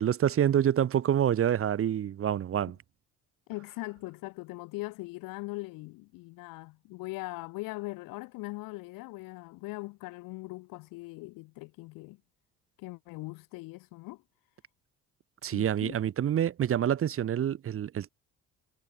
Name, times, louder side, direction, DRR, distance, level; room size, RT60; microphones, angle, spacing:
voice 1, 0.0-2.8 15.4-18.1, right 10 dB, 40° right, 0.7 m, -27 dB
voice 2, 3.5-12.2 12.8-14.2 15.5-16.0, left 22 dB, 90° left, 1.0 m, -40 dB
cardioid pair, 85°, 32 cm